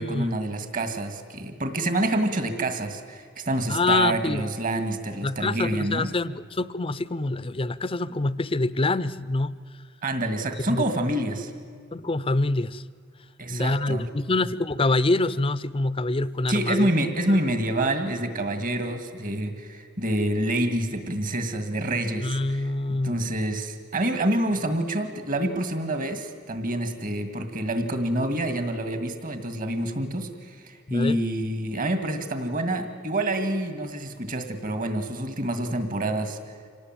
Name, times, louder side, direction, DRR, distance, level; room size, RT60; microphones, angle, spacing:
voice 1, 0.0-6.1 10.0-11.5 13.4-14.1 16.5-22.6 23.0-36.4, right 1 dB, 40° right, 9 dB, 2.1 m, -27 dB
voice 2, 3.7-4.5 5.2-9.6 10.7-10.8 11.9-12.8 13.5-16.9 17.3-17.4 22.2-23.3 30.9-31.2, left 2 dB, 25° left, 17 dB, 0.6 m, -26 dB
26.0 x 18.5 x 9.1 m, 2.1 s
head